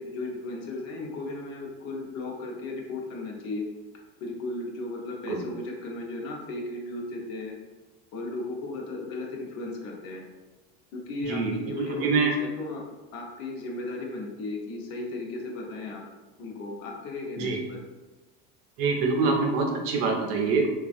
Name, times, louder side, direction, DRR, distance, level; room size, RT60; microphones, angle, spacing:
voice 1, 0.0-3.7 4.2-7.5 8.1-10.2 10.9-12.8 13.1-16.0 16.4-17.8, left 2 dB, 55° left, 0 dB, 0.7 m, -35 dB
voice 2, 11.8-12.3 17.4-17.6 18.8-20.7, right 4 dB, 50° right, 1 dB, 0.6 m, -25 dB
3.2 x 2.3 x 2.5 m, 1.2 s
cardioid pair, 150°, 30 cm